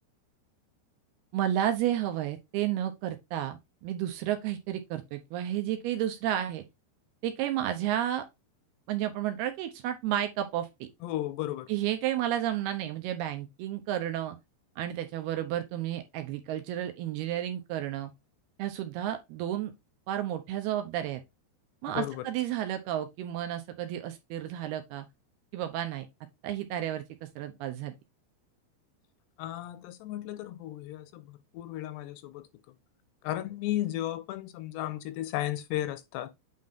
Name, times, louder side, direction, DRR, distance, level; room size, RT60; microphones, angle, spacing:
voice 1, 1.3-6.6 7.2-8.2 8.9-10.9 11.7-14.4 14.8-18.1 18.6-19.7 20.1-21.2 21.8-25.1 25.5-26.1 26.4-28.0, right 12 dB, 75° right, 2.6 m, -32 dB
voice 2, 11.0-11.7 21.9-22.3 29.4-32.5 33.2-36.3, left 14 dB, 80° left, 2.6 m, -34 dB
8.6 x 4.0 x 3.6 m
omnidirectional pair, 5.0 m